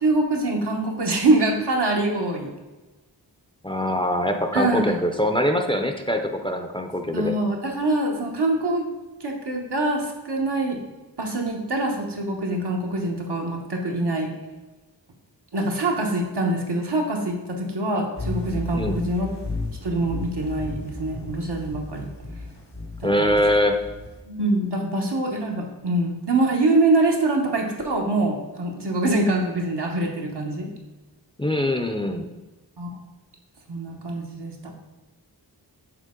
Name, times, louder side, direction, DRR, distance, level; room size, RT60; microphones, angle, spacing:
voice 1, 0.0-2.5 4.5-5.0 7.1-8.9 9.2-10.8 11.2-14.3 15.5-19.3 19.8-22.1 23.0-23.4 24.3-30.7 32.8-32.9 33.7-34.7, right 2 dB, 75° right, 0 dB, 1.1 m, -24 dB
voice 2, 3.6-7.3 18.7-19.0 23.0-23.8 31.4-32.3, equal, 15° left, 4 dB, 0.5 m, -23 dB
sound 1, 18.2-24.2, left 2 dB, 85° left, 1.3 m, -33 dB
6.6 x 4.2 x 3.7 m, 1.2 s
wide cardioid pair, 50°, 41 cm